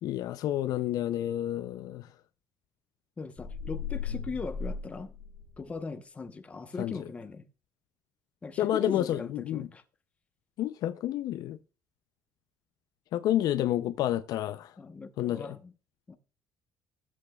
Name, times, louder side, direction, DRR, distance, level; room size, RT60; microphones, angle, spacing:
voice 1, 0.0-2.1 6.8-7.0 8.6-9.7 10.6-11.6 13.1-14.7 15.2-15.6, left 12 dB, 60° left, 0.5 m, -29 dB
voice 2, 3.2-5.1 5.6-7.4 8.4-9.8 14.8-15.7 16.1-16.2, left 4 dB, 20° left, 0.9 m, -39 dB
sound 1, 3.4-5.8, left 6 dB, 35° left, 1.5 m, -37 dB
16.0 x 8.1 x 2.3 m
cardioid pair, 150°, 7 cm